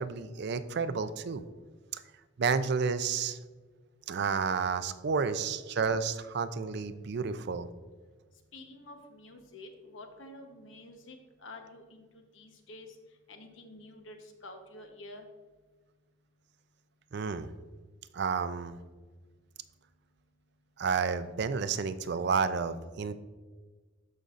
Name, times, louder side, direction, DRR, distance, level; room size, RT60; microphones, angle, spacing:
voice 1, 0.0-1.4 1.9-2.0 2.4-3.4 4.1-7.7 17.1-17.5 18.1-18.8 20.8-23.1, right 5 dB, 60° right, 12 dB, 0.4 m, -31 dB
voice 2, 8.5-12.9 13.3-15.2, left 2 dB, 75° left, 5 dB, 1.0 m, -49 dB
13.0 x 5.3 x 2.5 m, 1.4 s
head